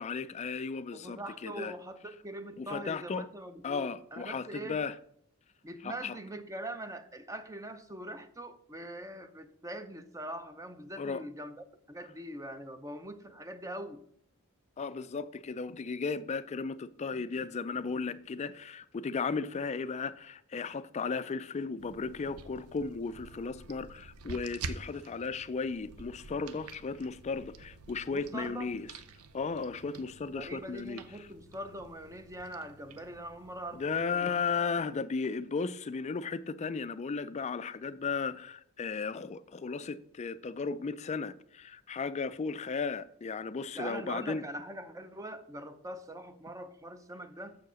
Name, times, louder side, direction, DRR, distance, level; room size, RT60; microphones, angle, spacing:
voice 1, 0.0-1.7 2.6-3.3 3.6-5.0 5.8-6.2 11.0-11.2 14.8-28.9 29.3-31.3 33.7-44.5, left 5 dB, 30° left, 0.3 m, -35 dB
voice 2, 0.9-4.8 5.6-11.5 11.9-14.0 28.1-28.7 30.3-33.8 34.1-34.3 43.7-47.6, right 1 dB, 15° right, 0.6 m, -42 dB
sound 1, 21.8-33.9, right 4 dB, 75° right, 0.6 m, -48 dB
7.2 x 4.7 x 6.2 m
head